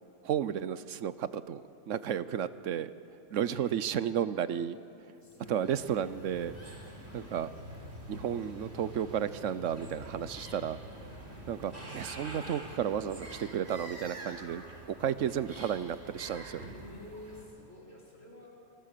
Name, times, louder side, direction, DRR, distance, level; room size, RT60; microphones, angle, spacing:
voice 1, 0.2-2.9 3.3-4.8 5.5-6.6 7.1-7.5 8.1-10.8 11.5-16.6, right 9 dB, 80° right, 15 dB, 1.1 m, -33 dB
voice 2, 3.4-4.1 5.2-5.8 7.0-7.3 11.3-11.6 16.7-18.5, left 1 dB, 85° left, -4 dB, 5.0 m, -51 dB
sound 1, 5.3-17.4, equal, 55° right, 4.0 m, -46 dB
28.5 x 20.5 x 6.8 m, 2.8 s
omnidirectional pair, 1.3 m